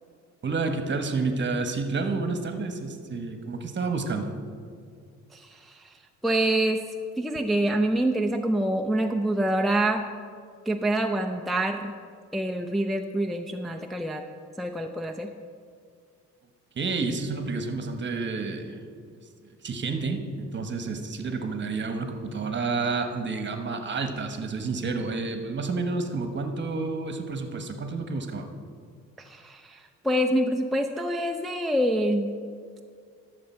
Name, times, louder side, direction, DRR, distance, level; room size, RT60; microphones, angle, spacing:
voice 1, 0.4-4.3 16.7-18.8 19.4-28.5, right 4 dB, 40° right, 6 dB, 1.2 m, -30 dB
voice 2, 5.3-5.9 6.2-6.8 7.2-10.1 10.7-12.0 12.3-14.2 14.6-15.3 29.2-32.3, right 1 dB, ahead, 3 dB, 0.5 m, -26 dB
13.0 x 6.7 x 4.4 m, 2.2 s
cardioid pair, 90°, 30 cm